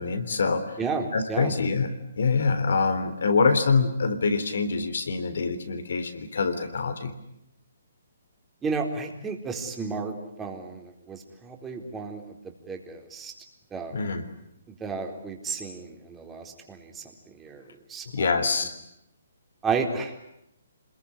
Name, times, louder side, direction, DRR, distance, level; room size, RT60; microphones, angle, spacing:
voice 1, 0.0-0.6 1.1-7.1 13.9-14.3 18.1-18.7, left 4 dB, 70° left, 10 dB, 3.7 m, -25 dB
voice 2, 0.8-1.5 8.6-13.3 13.7-13.9 14.8-17.0 17.4-17.6 17.9-18.5 19.6-20.2, right 4 dB, 10° right, 3 dB, 4.0 m, -32 dB
27.0 x 21.5 x 9.9 m, 0.81 s
hypercardioid pair, 140°, 0 cm